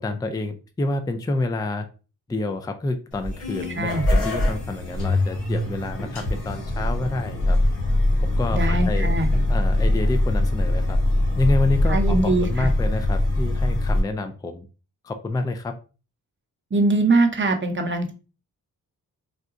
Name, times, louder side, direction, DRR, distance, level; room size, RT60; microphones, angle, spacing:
voice 1, 0.0-1.9 2.3-7.6 8.2-9.1 9.5-11.0 11.4-14.6 15.0-15.7, left 2 dB, 10° left, 8 dB, 0.4 m, -28 dB
sound 1, 3.1-14.0, left 1 dB, 90° left, 1.2 m, -22 dB
voice 2, 8.5-9.3 11.9-12.7 16.7-18.1, right 2 dB, 30° right, 4 dB, 0.7 m, -22 dB
3.9 x 2.2 x 2.5 m, 0.34 s
cardioid pair, 50°, 38 cm